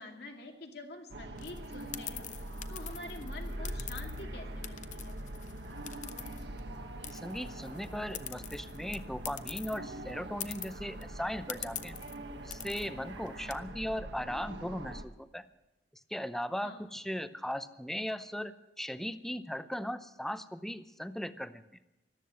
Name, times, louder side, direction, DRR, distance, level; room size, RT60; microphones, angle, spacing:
voice 1, 0.0-2.2 2.7-5.2 16.6-16.8, left 2 dB, 65° left, 2 dB, 2.4 m, -47 dB
sound 1, 1.1-15.0, right 1 dB, 75° right, 1.4 m, -43 dB
sound 2, 1.4-4.2 4.6-6.8 7.0-9.8 10.1-10.2 10.4-11.0 11.5-12.2 12.5-12.9 13.3-13.5, left 11 dB, 45° left, 0.7 m, -44 dB
voice 2, 7.1-12.0 12.4-15.4 16.1-21.6, equal, ahead, 12 dB, 0.6 m, -38 dB
14.0 x 12.5 x 7.6 m, 0.94 s
head